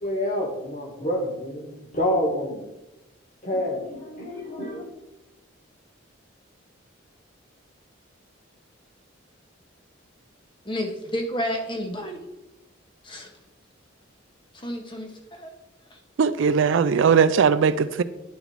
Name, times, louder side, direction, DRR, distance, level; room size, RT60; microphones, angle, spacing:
voice 1, 0.0-2.6 3.4-4.8, left 1 dB, 40° left, 0 dB, 1.7 m, -28 dB
voice 2, 10.7-12.2 13.0-13.3 14.5-15.5, equal, 25° left, 4 dB, 0.9 m, -31 dB
voice 3, 16.2-18.0, right 6 dB, 70° right, 14 dB, 0.4 m, -19 dB
10.5 x 4.1 x 4.5 m, 0.98 s
head